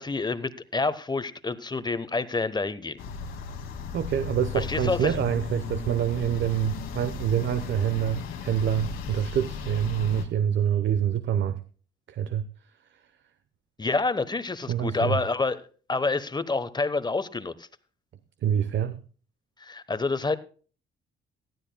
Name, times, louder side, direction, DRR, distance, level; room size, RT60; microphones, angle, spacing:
voice 1, 0.0-3.0 4.5-5.1 13.8-15.6 15.9-17.7 19.6-20.4, left 3 dB, 20° left, 1.1 m, -28 dB
sound 1, 3.0-10.2, left 6 dB, 85° left, 2.3 m, -35 dB
voice 2, 3.9-11.6 12.1-12.5 14.7-15.2 18.4-19.0, right 9 dB, 70° right, 0.9 m, -26 dB
18.5 x 12.0 x 2.2 m
cardioid pair, 90°, 20 cm